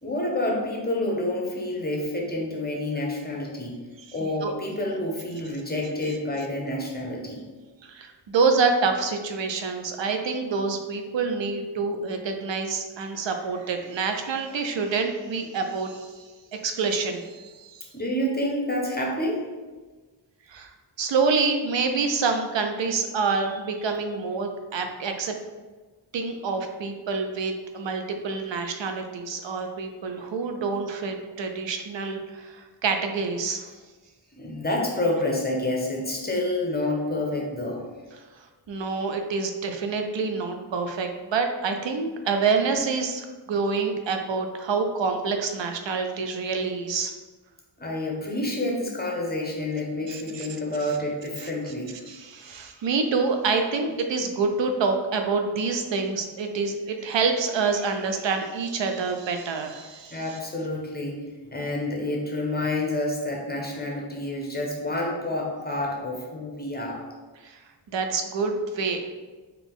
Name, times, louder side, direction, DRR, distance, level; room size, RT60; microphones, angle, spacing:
voice 1, 0.0-3.8 4.1-7.4 17.9-19.4 34.4-37.8 47.8-51.9 60.1-67.0, left 1 dB, 20° left, -1 dB, 0.9 m, -28 dB
voice 2, 4.1-4.5 7.8-17.8 20.5-20.7 21.0-25.3 26.1-33.7 38.4-47.1 50.1-50.5 51.4-51.5 52.1-60.4 67.4-67.6 67.9-69.1, right 4 dB, 75° right, 5 dB, 0.5 m, -27 dB
4.0 x 2.8 x 3.5 m, 1.3 s
wide cardioid pair, 65°, 45 cm